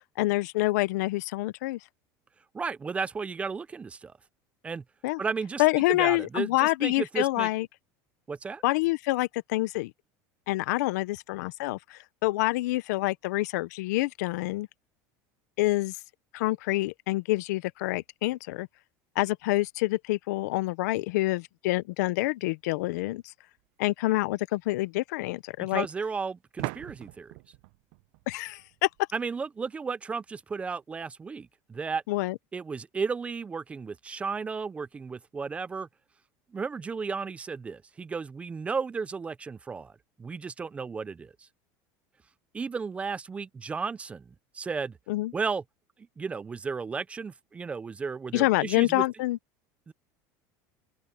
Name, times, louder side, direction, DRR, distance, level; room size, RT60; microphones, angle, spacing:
voice 1, 0.2-1.8 5.0-5.2 5.6-7.7 8.6-9.9 10.5-14.7 15.6-16.0 16.3-18.7 19.2-23.2 23.8-25.9 28.3-28.9 32.1-32.3 45.1-45.3 48.3-49.4, left 19 dB, 85° left, 0.7 m, -27 dB
voice 2, 2.5-4.1 4.6-4.8 5.2-7.5 8.3-8.6 25.6-27.3 29.1-32.0 32.5-35.9 36.5-39.9 40.2-41.5 42.5-45.0 45.3-45.6 46.2-49.0 49.9-50.0, right 5 dB, 15° right, 0.4 m, -34 dB
sound 1, 23.6-23.7 26.6-29.2, right 24 dB, 65° right, 0.6 m, -40 dB
open air
cardioid pair, 160°, 9 cm